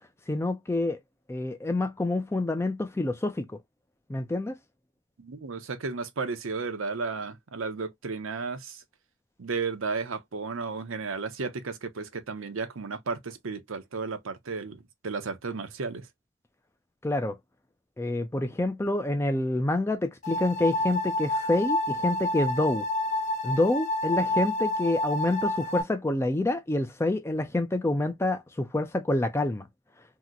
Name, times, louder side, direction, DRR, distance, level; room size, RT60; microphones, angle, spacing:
voice 1, 0.3-1.0 1.3-3.5 4.1-4.6 17.0-17.4 18.0-22.8 23.4-29.7, left 2 dB, 10° left, 0.3 m, -27 dB
voice 2, 5.2-8.8 9.4-16.1, right 4 dB, 70° right, 0.6 m, -33 dB
sound 1, 20.2-25.8, left 1 dB, 35° left, 0.7 m, -29 dB
2.9 x 2.1 x 3.6 m
head